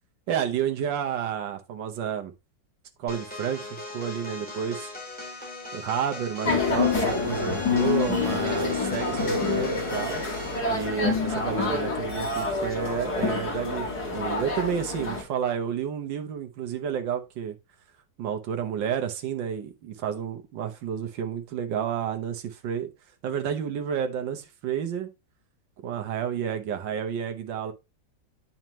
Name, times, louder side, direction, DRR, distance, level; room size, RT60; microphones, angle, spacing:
voice 1, 0.3-2.3 3.0-4.9 5.7-10.2 10.7-13.9 14.1-17.6 18.2-22.9 23.2-25.1 25.8-27.7, right 8 dB, 90° right, 1.7 m, -30 dB
sound 1, 3.1-10.7, left 1 dB, 5° left, 3.0 m, -39 dB
sound 2, 6.5-15.2, left 4 dB, 60° left, 2.7 m, -27 dB
9.1 x 5.7 x 3.0 m
omnidirectional pair, 1.9 m